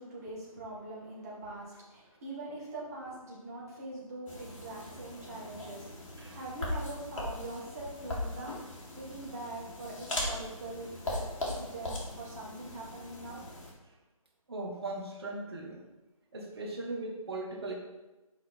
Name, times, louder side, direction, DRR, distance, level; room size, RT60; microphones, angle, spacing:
voice 1, 0.0-8.6 8.9-13.4, right 2 dB, 25° right, -6 dB, 1.8 m, -43 dB
sound 1, 4.3-13.7, left 1 dB, 60° left, 2.1 m, -39 dB
voice 2, 14.5-15.8 16.3-17.7, right 2 dB, 45° right, 1 dB, 1.4 m, -38 dB
6.0 x 4.8 x 4.4 m, 1.1 s
figure-of-eight pair, 165°, 19 cm